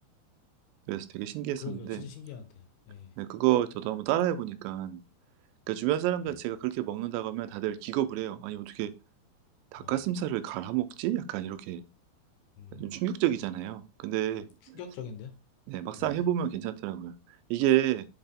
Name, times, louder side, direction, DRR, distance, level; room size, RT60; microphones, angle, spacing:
voice 1, 0.9-2.0 3.2-5.0 5.7-8.9 9.7-11.8 12.7-14.8 15.7-17.2 17.5-18.1, right 13 dB, 85° right, 2.9 m, -30 dB
voice 2, 1.6-3.1 6.3-6.4 9.8-10.0 12.6-13.0 14.7-15.3 16.0-16.2, left 7 dB, 70° left, 2.8 m, -43 dB
7.8 x 4.4 x 3.6 m
omnidirectional pair, 5.0 m